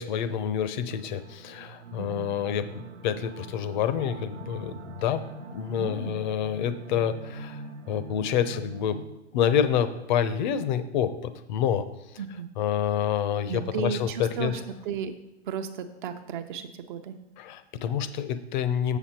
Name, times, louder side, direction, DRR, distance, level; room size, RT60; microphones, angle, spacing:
voice 1, 0.0-5.2 5.5-7.6 7.9-9.0 9.3-11.9 12.6-14.5 17.4-19.0, left 9 dB, 40° left, 13 dB, 0.7 m, -28 dB
sound 1, 0.9-9.0, right 3 dB, 80° right, 0.8 m, -43 dB
voice 2, 2.0-2.4 5.8-6.2 12.2-12.5 13.5-15.1 15.5-17.2, right 7 dB, 45° right, 8 dB, 0.8 m, -34 dB
7.1 x 7.0 x 4.3 m, 1.0 s
hypercardioid pair, 120°, 35 cm